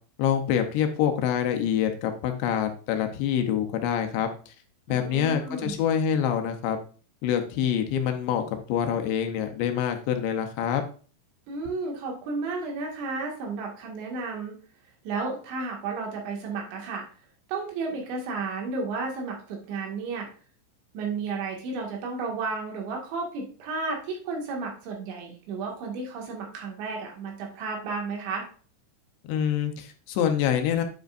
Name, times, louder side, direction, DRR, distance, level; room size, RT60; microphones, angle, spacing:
voice 1, 0.2-4.5 4.9-6.8 7.2-10.8 29.2-30.8, left 9 dB, 80° left, 6 dB, 3.0 m, -26 dB
voice 2, 4.9-5.7 11.5-14.6 15.1-17.1 17.5-20.3 20.9-28.5, right 4 dB, 75° right, 0 dB, 4.2 m, -32 dB
9.3 x 7.8 x 2.5 m, 0.40 s
omnidirectional pair, 5.3 m